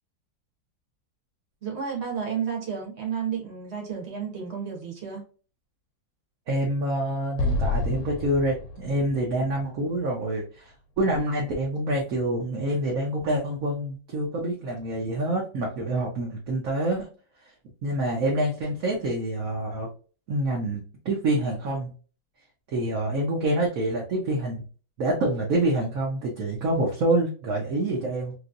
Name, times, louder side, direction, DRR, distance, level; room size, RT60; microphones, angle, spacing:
voice 1, 1.6-5.2, right 7 dB, 40° right, 0 dB, 1.3 m, -31 dB
voice 2, 6.5-17.1 17.8-19.9 20.3-21.9 22.7-24.6 25.0-28.3, right 1 dB, 60° right, -2 dB, 1.1 m, -27 dB
Explosion, 7.4-10.7, left 3 dB, 75° left, 1.1 m, -30 dB
3.1 x 3.1 x 2.5 m, 0.37 s
omnidirectional pair, 1.9 m